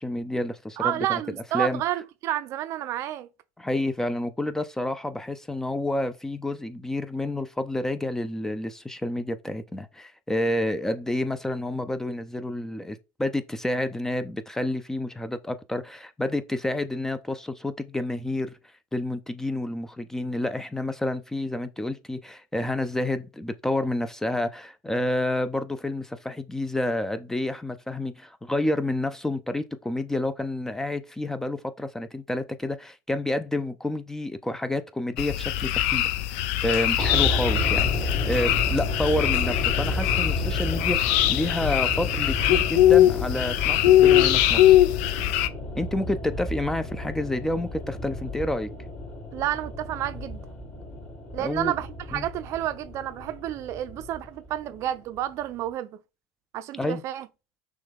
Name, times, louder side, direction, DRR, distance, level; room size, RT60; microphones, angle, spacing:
voice 1, 0.0-1.2 1.5-1.8 3.6-18.6 18.9-45.2 45.8-48.7 51.4-51.7 52.1-52.3 56.8-57.0, left 1 dB, 5° left, 0.4 m, -29 dB
voice 2, 0.8-3.3 49.3-50.4 51.3-56.0 56.5-57.3, right 12 dB, 50° right, 0.5 m, -30 dB
sound 1, 35.2-45.5, left 13 dB, 75° left, 0.5 m, -21 dB
sound 2, 37.0-55.2 55.4-55.5, left 1 dB, 25° left, 1.2 m, -32 dB
6.2 x 2.3 x 3.6 m
supercardioid pair, 130°, 6 cm